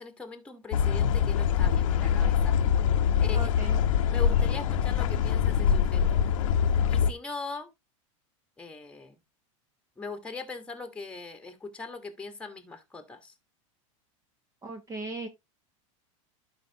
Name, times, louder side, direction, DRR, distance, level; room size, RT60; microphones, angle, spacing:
voice 1, 0.0-2.6 3.2-3.5 4.1-6.2 6.9-7.7 8.6-9.2 10.0-13.3, left 4 dB, 5° left, 1.5 m, -40 dB
sound 1, 0.7-7.1, left 8 dB, 75° left, 0.9 m, -24 dB
voice 2, 3.3-3.8 14.6-15.3, right 3 dB, 20° right, 1.0 m, -37 dB
11.5 x 5.1 x 2.9 m
hypercardioid pair, 110°, 17 cm